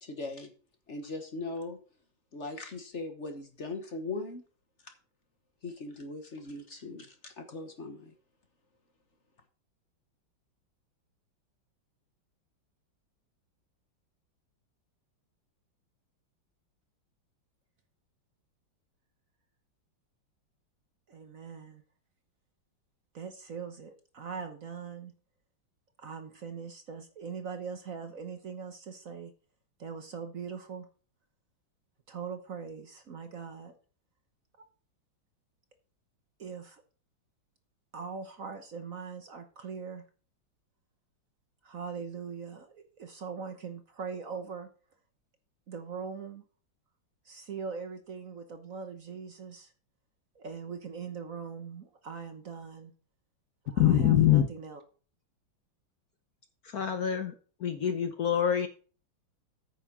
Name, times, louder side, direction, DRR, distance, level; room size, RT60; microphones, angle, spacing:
voice 1, 0.0-0.5 0.9-1.8 2.3-4.4 4.8-4.9 5.6-8.1, left 3 dB, 40° left, 1.4 m, -39 dB
voice 2, 21.1-21.8 23.1-25.1 26.0-29.3 29.8-30.9 32.1-33.8 36.4-36.8 37.9-40.0 41.6-44.7 45.7-46.4 47.2-49.7 50.3-52.9 53.6-54.8, right 5 dB, 50° right, 1.2 m, -41 dB
voice 3, 53.8-54.4 56.6-57.3 57.6-58.7, left 10 dB, 60° left, 1.2 m, -24 dB
9.2 x 6.3 x 6.0 m
omnidirectional pair, 2.2 m